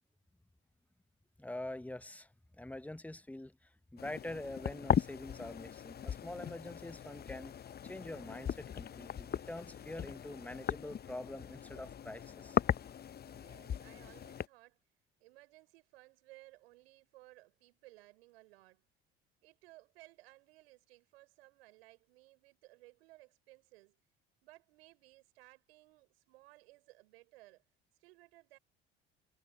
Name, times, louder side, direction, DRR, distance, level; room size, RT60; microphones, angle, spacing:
voice 1, 1.4-2.3 2.6-7.6 7.8-12.9, left 1 dB, 5° left, 1.1 m, -45 dB
sound 1, 4.0-14.5, left 9 dB, 30° left, 0.9 m, -38 dB
voice 2, 13.2-14.8 15.2-18.8 19.4-24.0 24.4-27.6 28.0-28.6, right 20 dB, 70° right, 6.3 m, -60 dB
figure-of-eight pair, 60°, 32 cm